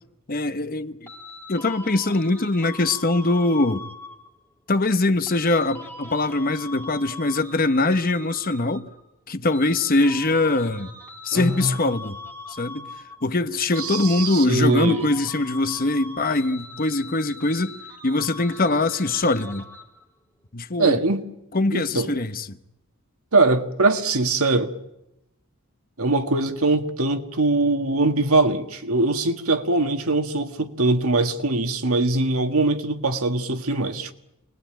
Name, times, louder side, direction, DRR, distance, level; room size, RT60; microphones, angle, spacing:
voice 1, 0.3-1.1 1.5-3.8 4.7-8.9 9.3-10.9 11.2-12.2 12.6-12.8 13.2-17.7 18.0-19.6 20.5-21.0 21.5-22.6, left 2 dB, 40° left, 1.0 m, -22 dB
sound 1, 1.1-4.4 5.3-9.1 9.5-13.4 13.7-20.1, left 2 dB, 10° left, 1.8 m, -41 dB
voice 2, 11.3-11.8 13.8-15.1 20.8-21.2 21.7-22.1 23.3-24.7 26.0-34.1, right 2 dB, 75° right, 1.8 m, -22 dB
27.5 x 21.0 x 9.0 m
head